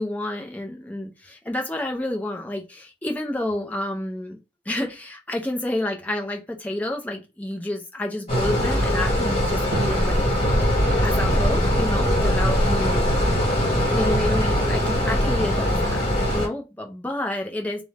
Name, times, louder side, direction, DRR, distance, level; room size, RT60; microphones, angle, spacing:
voice 1, 0.0-4.4 4.7-10.2 11.0-13.1 13.9-17.8, left 1 dB, 10° left, 0.5 m, -29 dB
sound 1, 8.3-16.5, equal, 35° left, 1.5 m, -21 dB
Drum, 9.7-11.9, right 2 dB, 85° right, 0.6 m, -37 dB
2.6 x 2.1 x 3.2 m
head